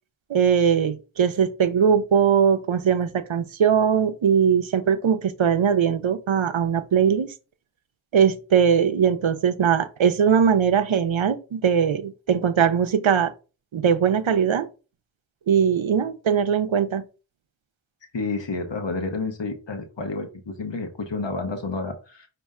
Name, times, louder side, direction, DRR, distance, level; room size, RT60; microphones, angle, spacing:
voice 1, 0.3-7.3 8.1-13.3 13.7-14.7 15.5-17.0, right 7 dB, 80° right, 0.6 m, -20 dB
voice 2, 18.1-22.3, left 3 dB, 70° left, 1.0 m, -30 dB
5.3 x 2.7 x 3.6 m
wide cardioid pair, 55°, 46 cm